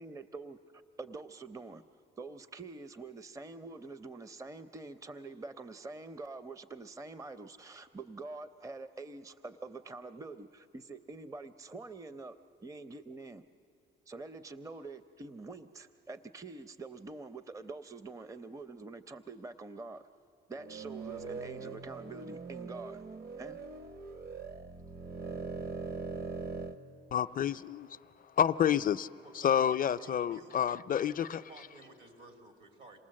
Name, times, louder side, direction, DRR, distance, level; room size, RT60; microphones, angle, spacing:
voice 1, 0.0-1.8 2.2-13.4 14.1-20.1 20.5-23.0 23.4-23.6, right 3 dB, 15° right, 0.6 m, -46 dB
sound 1, 20.5-26.8, right 4 dB, 50° right, 1.2 m, -41 dB
voice 2, 27.1-28.0 28.4-29.1 29.3-31.4, left 9 dB, 45° left, 0.4 m, -29 dB
voice 3, 29.2-30.6 31.1-33.0, right 2 dB, 70° right, 2.9 m, -54 dB
27.5 x 19.0 x 7.6 m
cardioid pair, 90°, 20 cm